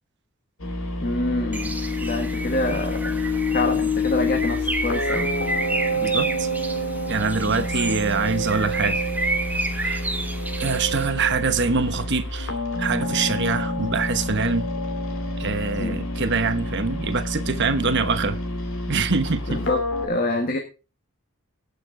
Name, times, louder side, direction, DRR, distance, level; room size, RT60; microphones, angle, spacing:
sound 1, 0.6-20.1, left 1 dB, 70° left, 2.4 m, -28 dB
voice 1, 1.0-1.8 2.0-3.2 3.5-5.3 7.5-7.6 15.8-16.0 19.5-20.6, left 2 dB, 45° left, 1.5 m, -26 dB
Bird, 1.5-11.1, right 2 dB, 10° right, 1.0 m, -31 dB
voice 2, 5.9-6.5 7.1-9.0 9.7-10.0 10.6-14.7 15.4-18.4 18.9-19.6, right 4 dB, 55° right, 1.1 m, -24 dB
19.0 x 6.7 x 3.8 m
head